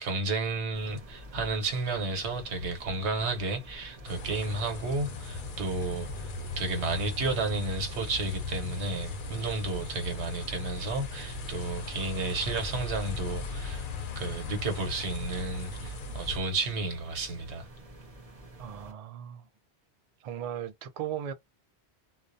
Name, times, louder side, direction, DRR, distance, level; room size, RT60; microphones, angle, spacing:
voice 1, 0.0-6.1 6.6-13.9 14.2-17.7, right 3 dB, 90° right, 1.1 m, -32 dB
sound 1, 0.7-18.9, right 1 dB, 35° right, 0.8 m, -49 dB
sound 2, 4.0-16.4, left 3 dB, 55° left, 0.6 m, -38 dB
voice 2, 18.6-19.5 20.2-21.3, right 10 dB, 65° right, 0.3 m, -37 dB
2.3 x 2.1 x 2.6 m
omnidirectional pair, 1.1 m